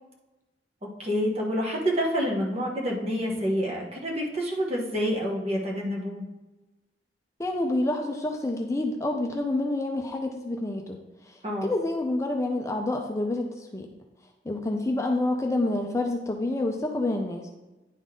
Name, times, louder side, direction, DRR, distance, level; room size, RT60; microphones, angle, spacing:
voice 1, 1.0-6.2 11.4-11.7, equal, 35° right, -2 dB, 1.2 m, -28 dB
voice 2, 7.4-11.0 11.2-13.9 14.4-17.5, left 2 dB, 15° left, 2 dB, 0.5 m, -28 dB
10.0 x 3.9 x 3.7 m, 1.1 s
head